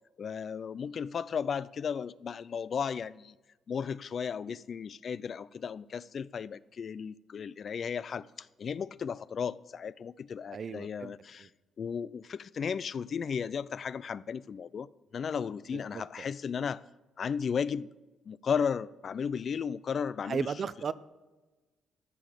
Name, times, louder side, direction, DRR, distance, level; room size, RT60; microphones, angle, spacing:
voice 1, 0.2-3.3 3.7-11.5 11.8-14.9 15.1-16.8 17.2-17.9 18.3-20.5, left 6 dB, 50° left, 0.4 m, -35 dB
voice 2, 10.5-11.1 11.4-11.5 15.7-16.3 20.3-20.9, right 6 dB, 50° right, 0.5 m, -36 dB
13.5 x 5.8 x 6.7 m
cardioid pair, 90°, 0 cm